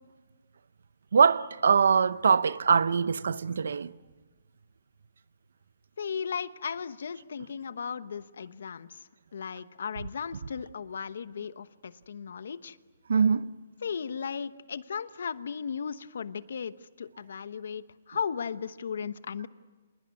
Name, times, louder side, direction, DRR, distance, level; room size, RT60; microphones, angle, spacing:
voice 1, 1.1-3.9 13.1-13.5, right 6 dB, 80° right, 0.8 m, -23 dB
voice 2, 6.0-9.0 9.3-12.8 13.8-19.5, left 6 dB, 70° left, 1.0 m, -36 dB
28.0 x 20.5 x 9.7 m
hypercardioid pair, 160°, 0 cm